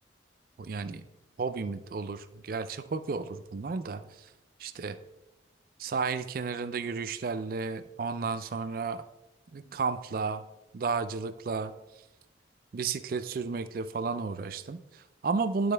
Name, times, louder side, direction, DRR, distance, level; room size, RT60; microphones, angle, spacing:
voice 1, 0.6-1.0 1.4-4.0 4.6-5.0 5.8-9.0 9.5-10.5 10.7-11.7 12.7-15.7, right 4 dB, 50° right, 12 dB, 0.3 m, -32 dB
11.5 x 4.2 x 3.3 m, 0.96 s
head